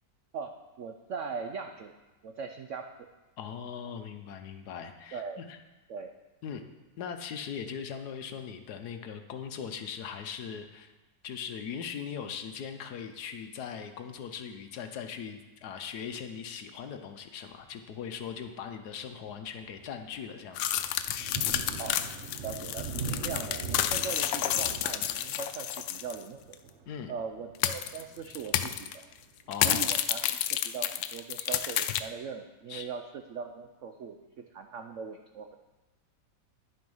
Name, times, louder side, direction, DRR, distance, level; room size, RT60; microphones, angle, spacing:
voice 1, 0.3-1.9 2.2-2.9 5.1-5.4 5.9-6.1 21.8-22.0 22.4-26.6 27.1-29.1 29.6-33.0 33.3-35.5, right 6 dB, 85° right, 5 dB, 0.6 m, -40 dB
voice 2, 3.4-5.6 6.4-6.6 7.0-10.9 11.2-20.8 26.9-27.1 29.5-29.8 32.7-32.9, left 7 dB, 65° left, 7 dB, 1.2 m, -40 dB
Thunder, 17.5-17.8 18.4-18.5 19.0-29.5, right 5 dB, 50° right, 0.9 m, -43 dB
sound 1, 20.6-26.2 26.5-26.6 27.6-28.0 28.3-28.9 29.5-32.0, left 11 dB, 85° left, 1.3 m, -30 dB
10.5 x 7.7 x 5.4 m, 1.1 s
omnidirectional pair, 2.0 m